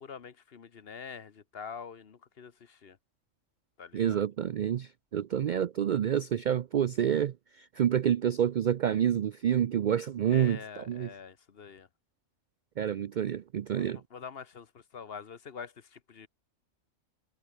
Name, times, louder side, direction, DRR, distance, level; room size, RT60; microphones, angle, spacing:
voice 1, 0.0-3.0 3.8-4.2 10.3-11.9 13.8-16.3, left 6 dB, 50° left, 1.2 m, -45 dB
voice 2, 3.9-11.1 12.8-14.0, right 9 dB, 65° right, 0.4 m, -28 dB
omnidirectional pair, 1.3 m